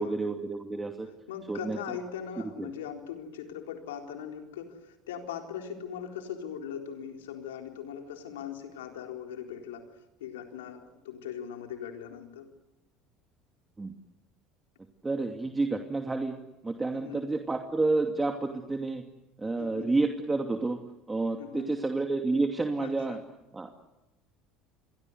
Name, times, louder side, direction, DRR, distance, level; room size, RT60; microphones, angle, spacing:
voice 1, 0.0-1.1 1.5-1.8 2.6-2.7 13.8-13.9 15.0-16.4 16.6-19.0 19.4-20.8 21.1-23.2 23.5-23.7, right 3 dB, 15° right, 4 dB, 2.6 m, -29 dB
voice 2, 1.3-9.9 10.2-12.5 16.9-17.2 19.6-19.9 21.4-21.8 22.8-23.2, left 8 dB, 80° left, 4 dB, 4.0 m, -40 dB
29.5 x 24.0 x 8.1 m, 0.96 s
hypercardioid pair, 75°, 0 cm